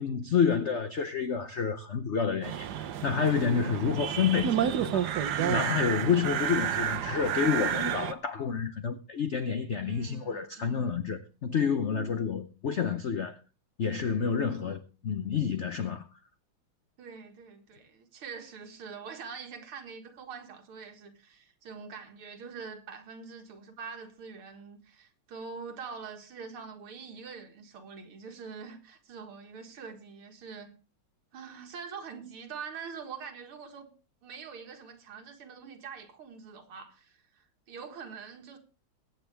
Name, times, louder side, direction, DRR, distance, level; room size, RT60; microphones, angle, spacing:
voice 1, 0.0-5.1 5.4-13.4 13.8-16.1, left 6 dB, 80° left, 0.6 m, -29 dB
sound 1, 2.4-8.1, right 9 dB, 60° right, 1.2 m, -30 dB
voice 2, 6.1-6.7 9.8-11.0 17.0-30.7 31.3-33.9 34.2-38.6, right 5 dB, 90° right, 2.6 m, -44 dB
22.0 x 8.2 x 3.4 m
omnidirectional pair, 2.3 m